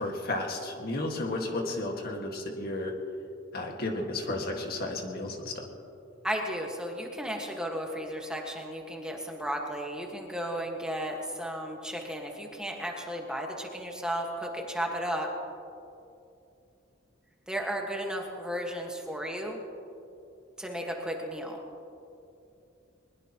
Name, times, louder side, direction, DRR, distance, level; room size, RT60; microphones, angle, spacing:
voice 1, 0.0-2.9 3.5-5.7, left 2 dB, 50° left, 2 dB, 1.8 m, -33 dB
voice 2, 6.2-15.3 17.5-19.6 20.6-21.6, equal, 5° right, 0 dB, 1.6 m, -34 dB
21.0 x 21.0 x 3.0 m, 2.7 s
head